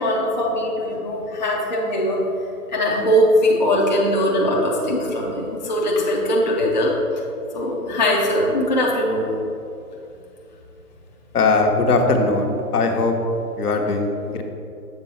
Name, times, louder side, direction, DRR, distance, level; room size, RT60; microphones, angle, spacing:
voice 1, 0.0-2.2 2.7-6.9 7.5-9.4, equal, 30° left, -4 dB, 0.4 m, -20 dB
voice 2, 11.3-13.1 13.6-14.4, left 3 dB, 70° left, 3 dB, 0.9 m, -20 dB
6.9 x 3.7 x 4.1 m, 2.6 s
hypercardioid pair, 150°, 47 cm